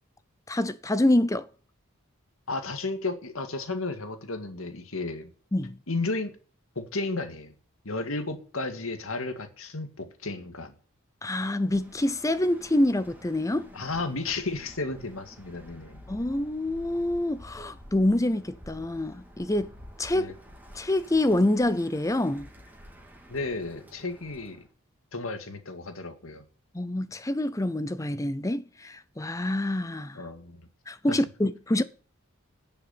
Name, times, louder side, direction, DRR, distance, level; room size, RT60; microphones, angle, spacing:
voice 1, 0.5-1.5 5.5-5.8 11.2-13.7 16.1-19.7 20.0-20.3 20.7-22.5 26.7-30.2 30.9-31.8, left 1 dB, 15° left, 0.6 m, -26 dB
voice 2, 2.5-5.3 5.9-6.4 6.8-7.5 7.8-10.7 13.7-16.0 20.1-20.3 23.3-24.7 25.1-26.4 30.1-30.7 31.1-31.2, left 3 dB, 75° left, 2.1 m, -33 dB
Bird, 11.6-24.7, equal, 10° right, 2.8 m, -50 dB
11.0 x 6.8 x 7.8 m
head